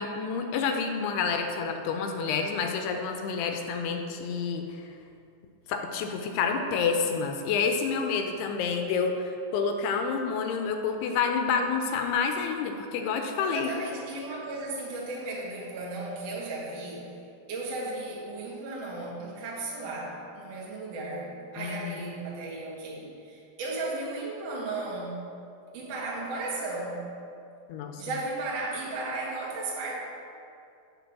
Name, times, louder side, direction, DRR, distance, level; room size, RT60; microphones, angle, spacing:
voice 1, 0.0-4.9 5.7-13.7 21.6-22.0 27.7-28.0, left 5 dB, 80° left, 4 dB, 2.5 m, -29 dB
voice 2, 13.4-17.2 17.5-25.2 25.7-27.1 28.0-29.9, right 2 dB, 55° right, -5 dB, 2.0 m, -35 dB
9.2 x 4.7 x 5.9 m, 2.5 s
omnidirectional pair, 4.9 m